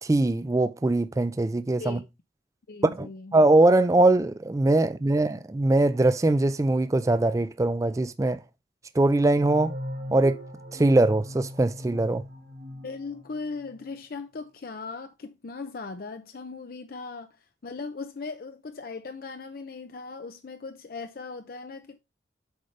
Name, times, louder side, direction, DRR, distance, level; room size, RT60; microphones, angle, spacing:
voice 1, 0.0-2.0 3.0-8.4 9.0-9.7 10.1-10.4 10.7-12.2, right 2 dB, 20° right, 0.3 m, -22 dB
voice 2, 2.7-3.4 12.8-22.0, left 4 dB, 55° left, 0.5 m, -38 dB
sound 1, 9.3-13.8, equal, 80° right, 1.5 m, -39 dB
8.0 x 5.0 x 3.2 m
head